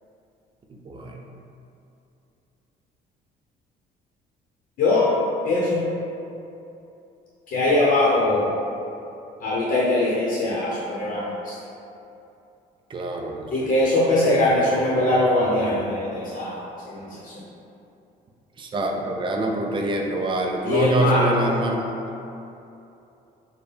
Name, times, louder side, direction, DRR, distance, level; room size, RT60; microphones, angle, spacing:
voice 1, 0.9-1.2 12.9-13.7 18.6-21.8, right 2 dB, 30° right, 1 dB, 0.4 m, -25 dB
voice 2, 4.8-5.1 5.4-5.8 7.5-8.4 9.4-11.5 13.5-16.6 16.9-17.4 20.6-21.3, left 2 dB, 60° left, -7 dB, 0.8 m, -21 dB
4.5 x 2.2 x 3.4 m, 2.8 s
cardioid pair, 110°, 17 cm